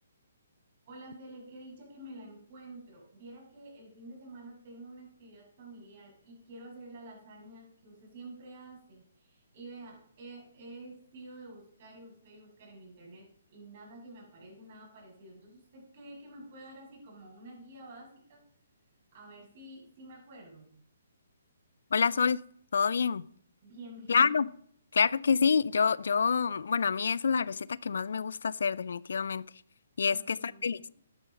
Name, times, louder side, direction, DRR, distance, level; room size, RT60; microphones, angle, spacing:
voice 1, 0.9-18.4 19.1-20.7 23.6-24.3 30.1-30.9, right 2 dB, 45° right, -1 dB, 6.9 m, -49 dB
voice 2, 21.9-22.4 22.7-23.2 24.1-24.5 24.9-29.4 30.0-30.9, left 6 dB, 65° left, 22 dB, 0.4 m, -27 dB
12.5 x 10.5 x 5.3 m, 0.63 s
figure-of-eight pair, 135°, 0 cm